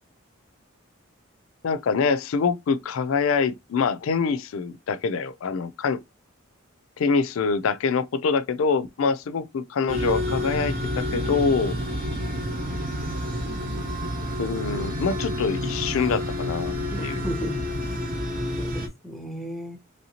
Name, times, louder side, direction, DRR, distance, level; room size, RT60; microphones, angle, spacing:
voice 1, 1.6-6.0 7.0-11.7 14.4-17.2, left 5 dB, 70° left, 0.4 m, -25 dB
sound 1, 9.9-18.9, left 1 dB, 45° right, 0.8 m, -29 dB
voice 2, 16.9-17.7 18.6-19.8, equal, ahead, 0.5 m, -34 dB
3.1 x 2.8 x 2.8 m
head